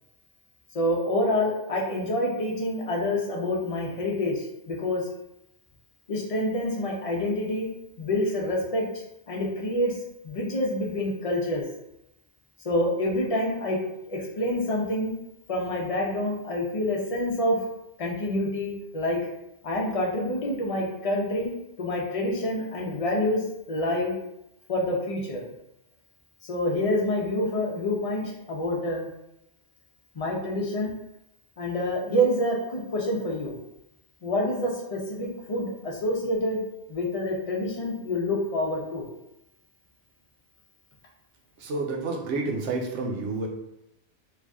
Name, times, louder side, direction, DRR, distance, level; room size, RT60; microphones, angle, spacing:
voice 1, 0.7-5.0 6.1-7.7 8.0-8.9 9.3-10.0 10.2-11.6 12.6-13.8 14.1-15.1 15.5-17.6 18.0-19.2 19.6-21.5 21.8-24.1 24.7-25.5 26.5-29.1 30.1-30.9 31.6-33.6 34.2-36.6 36.9-39.1, left 1 dB, 35° left, -2 dB, 0.7 m, -27 dB
voice 2, 41.6-43.5, right 3 dB, 70° right, 1 dB, 1.0 m, -29 dB
3.2 x 2.6 x 3.5 m, 0.86 s
omnidirectional pair, 1.3 m